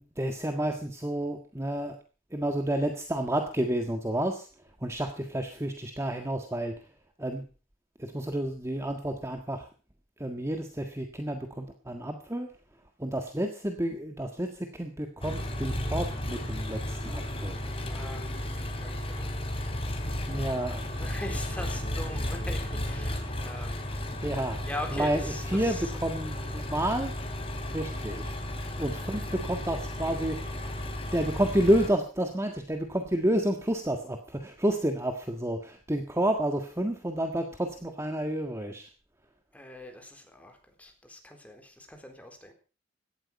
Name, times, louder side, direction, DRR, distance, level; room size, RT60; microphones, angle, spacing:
voice 1, 0.0-2.0 2.3-4.5 4.8-6.9 7.2-7.4 8.0-9.7 10.2-12.5 13.0-17.6 20.3-20.9 24.1-24.6 24.9-27.1 27.7-28.3 28.8-30.5 31.1-38.9, right 1 dB, 15° right, 5 dB, 1.6 m, -30 dB
Engine, 15.2-31.9, left 1 dB, 30° left, 3.3 m, -34 dB
voice 2, 17.9-19.3 21.0-23.8 24.6-25.9 39.5-42.5, left 1 dB, 10° left, 4 dB, 4.0 m, -41 dB
17.5 x 12.5 x 5.4 m, 0.36 s
head